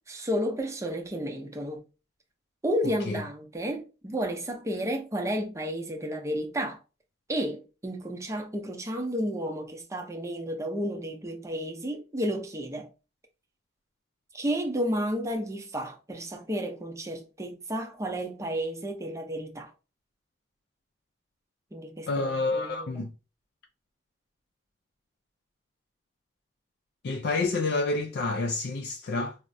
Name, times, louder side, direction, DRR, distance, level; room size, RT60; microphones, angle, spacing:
voice 1, 0.1-1.8 2.6-6.8 7.3-12.9 14.3-19.7 21.7-23.0, equal, 15° right, 0.6 m, -32 dB
voice 2, 2.8-3.2 22.1-23.1 27.0-29.4, left 3 dB, 65° left, 0.4 m, -29 dB
4.5 x 2.0 x 2.6 m
head